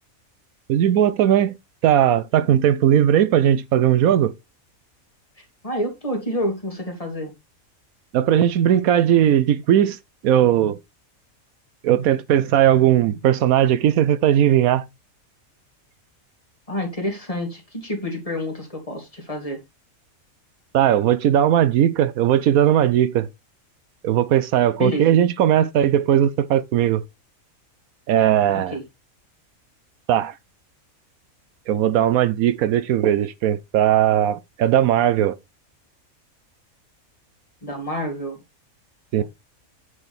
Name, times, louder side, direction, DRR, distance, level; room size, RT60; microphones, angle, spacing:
voice 1, 0.7-1.6 1.8-4.3 8.1-10.0 10.2-10.8 11.8-14.8 20.7-23.3 24.0-27.0 28.1-28.8 30.1-30.3 31.7-35.4 39.1-39.2, right 10 dB, 80° right, 1.1 m, -18 dB
voice 2, 5.4-7.3 16.7-19.6 24.8-25.2 28.7-28.8 37.6-38.4 39.2-39.3, equal, 25° left, 2.4 m, -28 dB
8.6 x 4.8 x 4.2 m
omnidirectional pair, 1.5 m